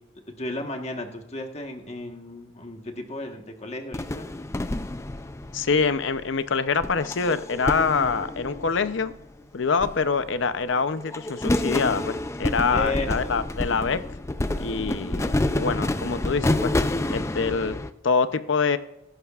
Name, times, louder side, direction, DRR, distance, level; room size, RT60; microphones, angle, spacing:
voice 1, 0.4-4.3 12.7-13.1, left 2 dB, 30° left, 3 dB, 1.3 m, -34 dB
sound 1, 3.9-6.2 6.8-9.3 9.8-10.6 10.9-17.9, left 1 dB, 15° left, 0.3 m, -28 dB
voice 2, 5.5-9.1 9.5-14.0 14.6-16.7 17.1-17.8 18.0-18.8, left 5 dB, 60° left, 12 dB, 0.6 m, -25 dB
22.0 x 11.0 x 2.4 m, 0.87 s
head